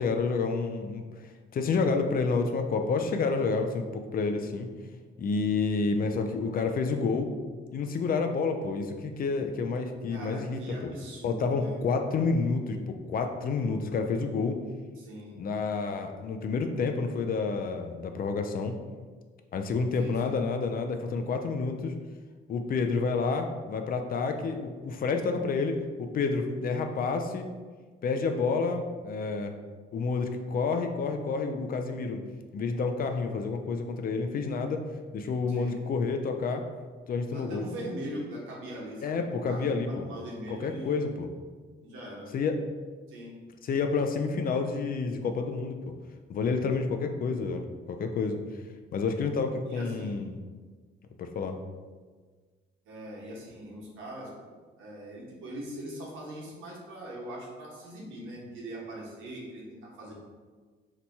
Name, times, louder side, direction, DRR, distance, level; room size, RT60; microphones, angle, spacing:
voice 1, 0.0-4.7 5.2-7.3 7.7-10.6 11.2-14.6 15.4-18.7 19.5-21.9 22.5-27.5 28.0-29.5 29.9-32.2 32.5-34.8 35.1-36.6 37.1-37.6 39.0-40.1 40.5-41.3 42.3-42.6 43.6-45.7 46.3-47.6 47.9-48.4 48.9-50.4 51.2-51.6, left 4 dB, 50° left, 5 dB, 0.4 m, -29 dB
voice 2, 10.1-11.8 15.0-15.4 20.0-20.4 35.5-35.8 37.3-41.1 41.8-42.3 43.1-43.3 49.7-50.1 52.8-54.5 54.8-60.1, right 1 dB, 85° right, -3 dB, 1.0 m, -41 dB
2.9 x 2.2 x 4.0 m, 1.4 s
cardioid pair, 90°, 20 cm